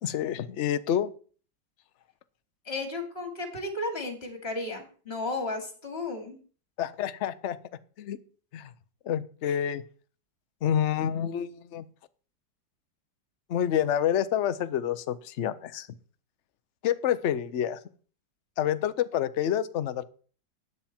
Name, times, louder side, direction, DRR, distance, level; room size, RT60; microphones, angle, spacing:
voice 1, 0.0-1.1 6.8-7.6 8.0-8.2 8.5-8.7 9.0-9.8 10.6-11.9 13.5-15.9 16.8-17.8 18.6-20.0, left 10 dB, 55° left, 13 dB, 0.8 m, -28 dB
voice 2, 2.6-6.4 9.4-9.6, left 2 dB, 35° left, 5 dB, 2.8 m, -34 dB
13.0 x 9.5 x 4.4 m, 0.41 s
omnidirectional pair, 2.0 m